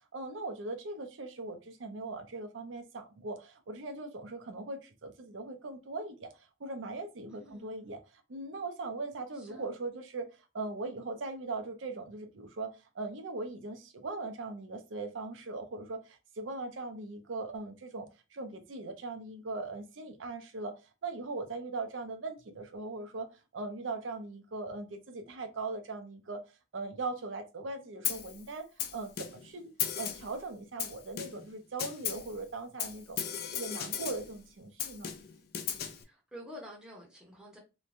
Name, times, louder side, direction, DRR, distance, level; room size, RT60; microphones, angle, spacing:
voice 1, 0.1-10.3 10.5-20.7 21.0-23.3 23.5-26.4 26.7-29.6 30.0-33.2 33.5-35.1, right 3 dB, 75° right, 0.5 m, -40 dB
voice 2, 7.3-8.0 9.4-9.7 33.9-34.4 36.0-37.6, equal, 5° right, 0.7 m, -50 dB
Snare drum, 28.0-28.4 28.8-29.5 29.8-30.4 30.8-31.5 31.8-32.3 32.8-34.3 34.8-36.0, left 9 dB, 55° left, 0.4 m, -36 dB
3.1 x 2.1 x 2.4 m
head